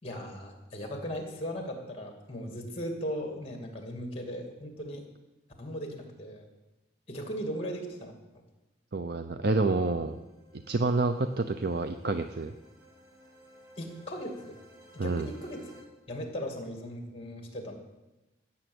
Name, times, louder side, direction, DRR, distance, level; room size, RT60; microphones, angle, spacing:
voice 1, 0.0-5.0 5.6-6.5 7.1-8.1 13.8-14.6 14.9-15.7 16.1-17.7, equal, 30° left, 3 dB, 2.4 m, -38 dB
voice 2, 8.9-10.2 10.7-12.5 15.0-15.3, right 3 dB, 55° right, 8 dB, 0.6 m, -28 dB
sound 1, 9.5-15.8, equal, 85° right, 4.6 m, -57 dB
16.0 x 7.2 x 7.9 m, 1.0 s
head